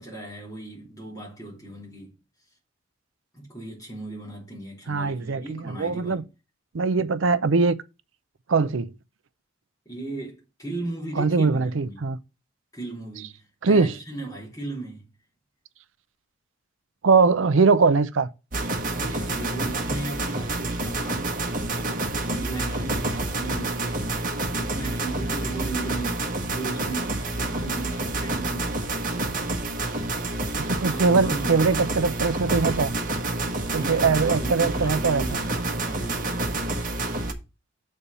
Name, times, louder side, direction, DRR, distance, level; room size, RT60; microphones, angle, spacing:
voice 1, 0.0-2.1 3.3-6.3 9.9-12.1 12.7-15.1 18.9-26.3 26.5-29.3 30.6-32.2 33.7-36.6, right 2 dB, 15° left, 3.3 m, -37 dB
voice 2, 4.9-6.2 6.7-7.8 8.5-8.9 11.2-12.2 13.6-13.9 17.0-18.3 30.7-32.9 33.7-35.2, right 4 dB, 80° right, 0.5 m, -21 dB
best dramatic game music for a shooting game, 18.5-37.3, right 2 dB, 45° right, 1.2 m, -28 dB
6.9 x 4.3 x 6.7 m
head